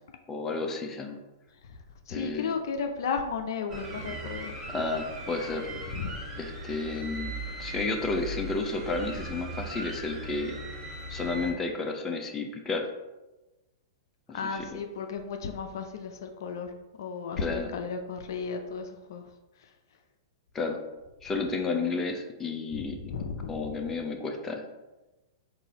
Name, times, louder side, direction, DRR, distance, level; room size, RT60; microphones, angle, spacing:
voice 1, 0.3-1.2 2.1-2.6 4.7-5.7 6.4-7.3 7.6-10.5 11.1-12.9 14.3-14.8 17.4-17.7 20.5-20.8 21.2-23.0 23.5-24.6, left 3 dB, 20° left, 3 dB, 0.6 m, -32 dB
voice 2, 2.1-4.5 6.0-6.2 14.3-16.7 17.0-19.2 22.7-23.7, left 5 dB, 65° left, 5 dB, 0.4 m, -34 dB
sound 1, 3.7-11.5, right 1 dB, 25° right, 1.4 m, -38 dB
3.9 x 2.6 x 4.0 m, 1.1 s
hypercardioid pair, 115°, 2 cm